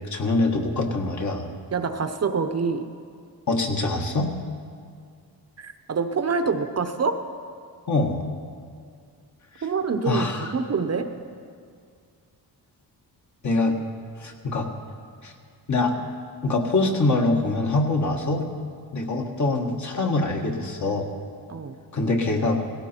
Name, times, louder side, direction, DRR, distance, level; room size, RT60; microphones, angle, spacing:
voice 1, 0.0-1.5 3.5-4.3 7.9-8.3 10.1-10.5 13.4-13.8 14.2-14.7 15.2-15.3 15.7-15.9 16.4-18.5 18.9-21.1 21.9-22.6, left 2 dB, 45° left, 2 dB, 1.7 m, -24 dB
voice 2, 1.7-2.9 5.6-7.2 9.6-11.1 21.5-21.8, right 5 dB, 40° right, 7 dB, 0.9 m, -26 dB
18.0 x 16.5 x 4.5 m, 2.2 s
cardioid pair, 120°, 39 cm